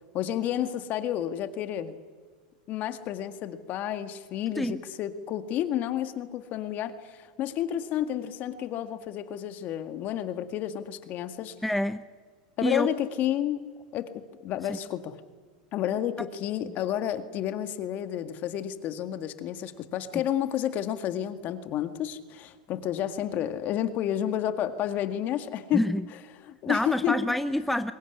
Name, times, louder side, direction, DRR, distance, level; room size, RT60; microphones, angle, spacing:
voice 1, 0.1-1.9 2.7-11.6 12.6-13.6 13.9-15.2 15.7-25.8 26.4-27.2, left 11 dB, 45° left, 10 dB, 1.9 m, -30 dB
voice 2, 11.6-12.0 12.6-12.9 14.7-14.8 25.7-26.1 26.7-27.9, left 1 dB, ahead, 11 dB, 0.7 m, -27 dB
23.0 x 20.5 x 10.0 m, 1.5 s
supercardioid pair, 125°, 4 cm